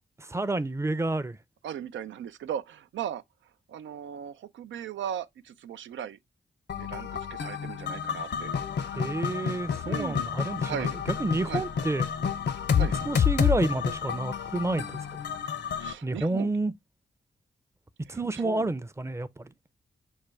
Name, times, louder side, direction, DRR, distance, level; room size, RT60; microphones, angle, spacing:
voice 1, 0.2-1.4 9.0-10.8 11.2-12.1 12.7-15.1 16.0-16.7 18.1-19.5, right 2 dB, 15° right, 0.5 m, -30 dB
voice 2, 1.6-3.2 3.7-6.2 6.7-8.5 9.8-10.2 10.6-11.0 11.5-11.6 12.8-13.0 15.8-16.5 18.1-18.7, right 9 dB, 80° right, 0.4 m, -37 dB
sound 1, 6.7-15.9, left 7 dB, 65° left, 0.7 m, -29 dB
6.3 x 2.2 x 3.3 m
cardioid pair, 50°, 19 cm